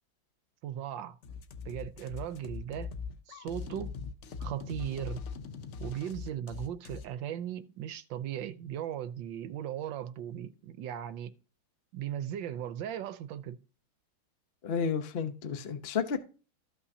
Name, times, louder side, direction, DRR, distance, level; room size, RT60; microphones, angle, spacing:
voice 1, 0.6-1.2 1.6-3.0 3.3-3.9 4.4-5.2 5.8-11.3 11.9-13.6, right 10 dB, 75° right, 1.3 m, -37 dB
sound 1, 1.2-7.1, left 5 dB, 90° left, 0.6 m, -41 dB
voice 2, 14.6-16.2, left 6 dB, 45° left, 0.8 m, -32 dB
14.5 x 5.6 x 2.8 m
omnidirectional pair, 2.2 m